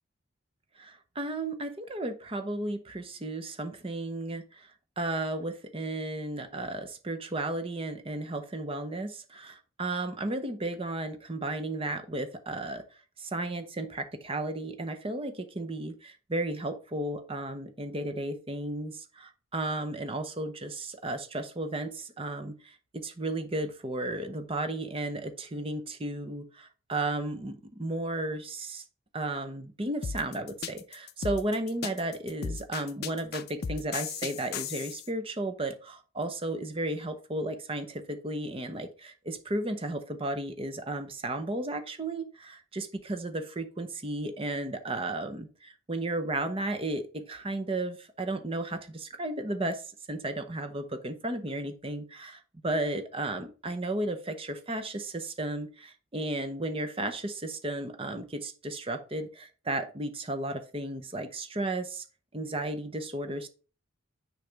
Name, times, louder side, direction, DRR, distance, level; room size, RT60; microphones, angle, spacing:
voice 1, 0.8-4.7 5.0-12.8 13.2-28.8 29.1-62.0 62.3-63.5, right 2 dB, 25° right, 8 dB, 0.8 m, -34 dB
sound 1, 30.0-35.1, left 6 dB, 50° left, 0.5 m, -36 dB
6.7 x 4.7 x 3.4 m, 0.35 s
head